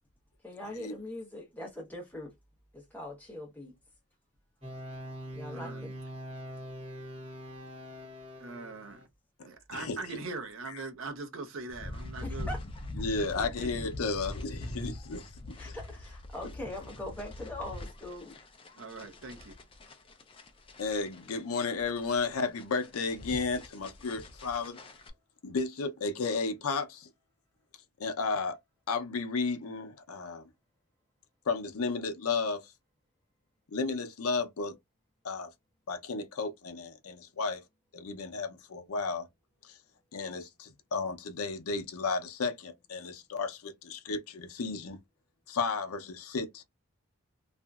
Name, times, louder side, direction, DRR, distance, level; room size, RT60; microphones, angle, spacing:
voice 1, 0.4-2.3 2.7-3.7 5.3-5.9 12.2-12.6 15.6-18.3, left 1 dB, 5° left, 0.8 m, -41 dB
sound 1, 4.6-9.0, equal, 25° right, 1.3 m, -43 dB
voice 2, 5.5-6.0 8.4-9.0 9.4-12.5 13.2-13.7 14.6-14.7 18.8-19.6, right 3 dB, 60° right, 0.6 m, -42 dB
voice 3, 9.7-10.0 12.9-15.8 20.8-24.8 25.4-27.1 28.0-28.6 28.9-30.5 31.4-32.7 33.7-34.8 35.2-35.5 35.9-37.6 37.9-39.3 39.6-39.8 40.1-45.0 45.5-46.6, left 4 dB, 80° left, 0.5 m, -33 dB
sound 2, 11.7-25.1, left 2 dB, 25° left, 0.4 m, -43 dB
2.8 x 2.5 x 2.2 m
head